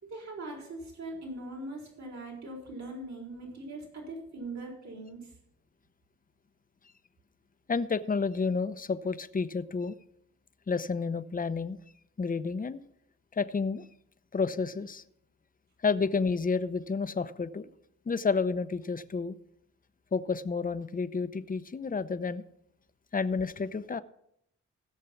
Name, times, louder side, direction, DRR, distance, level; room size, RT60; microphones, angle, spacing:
voice 1, 0.0-5.3, right 2 dB, 60° right, 0 dB, 4.3 m, -41 dB
voice 2, 7.7-9.9 10.7-11.8 12.2-12.8 13.3-13.9 14.3-15.0 15.8-17.7 18.1-19.4 20.1-22.4 23.1-24.0, left 4 dB, 25° left, 13 dB, 0.7 m, -30 dB
15.5 x 6.6 x 5.8 m, 0.75 s
supercardioid pair, 50°, 31 cm